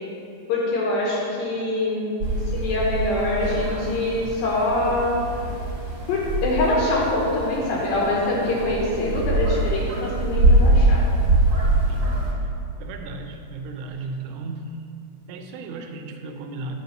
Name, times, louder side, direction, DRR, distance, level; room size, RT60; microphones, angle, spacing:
voice 1, 0.5-2.1 2.5-5.2 6.1-11.0, left 2 dB, 75° left, -4 dB, 2.6 m, -24 dB
sound 1, 2.2-12.3, right 1 dB, 55° right, 1.6 m, -23 dB
voice 2, 11.9-12.5 12.8-14.8 15.3-16.8, right 3 dB, 85° right, 4 dB, 2.5 m, -35 dB
9.3 x 3.4 x 6.5 m, 2.5 s
omnidirectional pair, 4.5 m